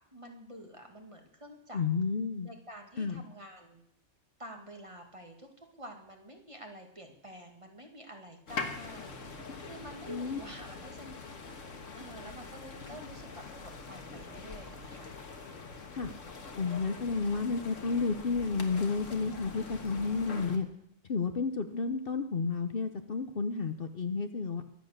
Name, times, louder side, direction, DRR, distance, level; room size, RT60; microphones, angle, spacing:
voice 1, 0.1-1.8 2.4-3.8 4.4-5.5 5.8-9.3 9.6-11.1 11.6-15.1, equal, 25° right, 3 dB, 2.1 m, -48 dB
voice 2, 1.7-2.5 3.0-3.2 10.1-10.4 15.9-16.1 16.6-20.7 21.1-24.6, left 4 dB, 50° left, 8 dB, 1.0 m, -31 dB
sound 1, 8.5-20.6, left 4 dB, 85° left, 1.9 m, -44 dB
22.5 x 8.3 x 6.6 m, 0.77 s
omnidirectional pair, 1.3 m